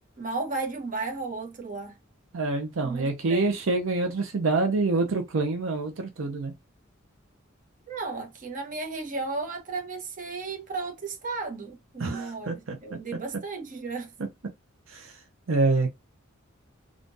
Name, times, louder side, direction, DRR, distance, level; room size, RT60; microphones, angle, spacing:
voice 1, 0.2-1.9 2.8-3.5 7.9-14.1, right 3 dB, 40° right, 1.0 m, -34 dB
voice 2, 2.3-6.5 12.0-12.8 14.9-15.1 15.5-15.9, right 3 dB, 80° right, 0.6 m, -26 dB
3.6 x 2.4 x 2.6 m
head